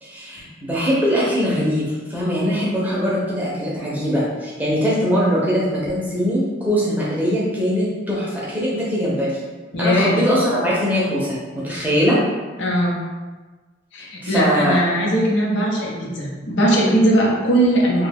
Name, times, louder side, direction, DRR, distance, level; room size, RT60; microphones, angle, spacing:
voice 1, 0.0-9.3 9.8-12.2 14.2-14.8, equal, 10° right, -7 dB, 0.6 m, -21 dB
voice 2, 9.7-10.2 12.6-13.0 13.9-18.1, right 1 dB, 70° left, -4 dB, 0.7 m, -19 dB
2.8 x 2.2 x 3.3 m, 1.3 s
head